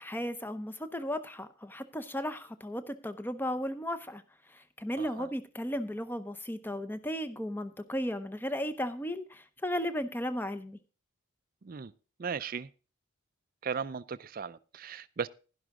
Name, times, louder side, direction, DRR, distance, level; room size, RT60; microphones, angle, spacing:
voice 1, 0.0-4.2 4.5-10.8, equal, 10° left, 0.7 m, -35 dB
voice 2, 5.0-5.3 11.6-11.9 12.2-12.7 13.6-15.3, right 6 dB, 40° right, 0.4 m, -37 dB
11.5 x 11.0 x 3.7 m
head